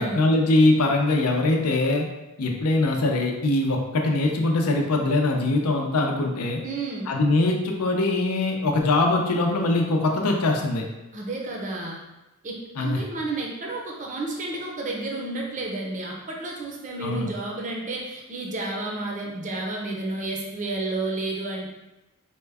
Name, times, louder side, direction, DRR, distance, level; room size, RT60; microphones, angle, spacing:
voice 1, 0.0-2.1 2.4-6.6 7.1-10.8 12.8-13.0 17.0-17.3, left 2 dB, 90° left, 2 dB, 0.6 m, -22 dB
voice 2, 6.6-7.1 11.1-12.0 12.4-21.7, right 2 dB, 35° right, -1 dB, 0.5 m, -31 dB
4.3 x 2.2 x 3.4 m, 1.0 s
head